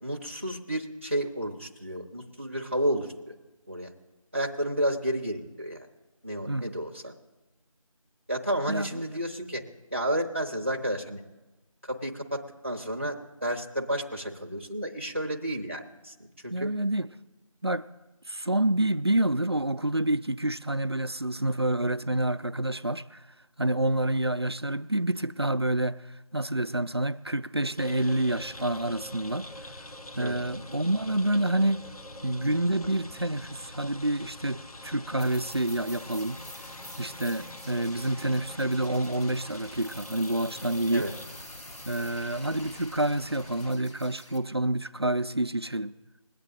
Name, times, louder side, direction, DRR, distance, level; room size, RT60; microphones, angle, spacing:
voice 1, 0.0-3.4 3.7-3.9 4.3-5.9 6.2-7.1 8.3-9.6 9.9-11.2 11.8-16.7 30.2-30.4 37.9-38.0 40.9-41.1, right 1 dB, 20° right, 0.8 m, -31 dB
voice 2, 16.5-17.1 17.6-17.9 18.3-23.2 23.6-26.0 26.3-29.5 30.1-31.9 32.2-36.4 37.0-41.1 41.9-45.9, right 1 dB, 45° right, 0.4 m, -28 dB
sound 1, 27.8-43.7, left 1 dB, 90° left, 1.0 m, -45 dB
sound 2, 35.2-44.4, left 1 dB, 50° left, 2.1 m, -49 dB
21.5 x 8.2 x 3.7 m
figure-of-eight pair, 175°, 18 cm